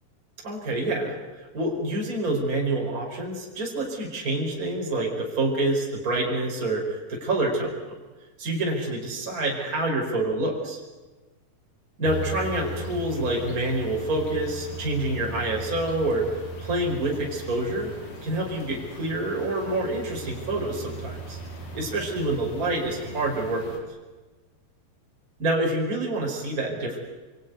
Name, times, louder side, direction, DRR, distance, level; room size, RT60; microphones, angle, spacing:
voice 1, 0.4-7.7 8.4-10.8 12.0-16.2 16.6-17.9 18.2-21.4 21.7-23.8 25.4-27.0, right 2 dB, 25° right, -1 dB, 4.8 m, -27 dB
sound 1, 12.0-23.8, right 1 dB, 55° left, 5.1 m, -38 dB
26.0 x 23.5 x 9.4 m, 1.3 s
omnidirectional pair, 3.8 m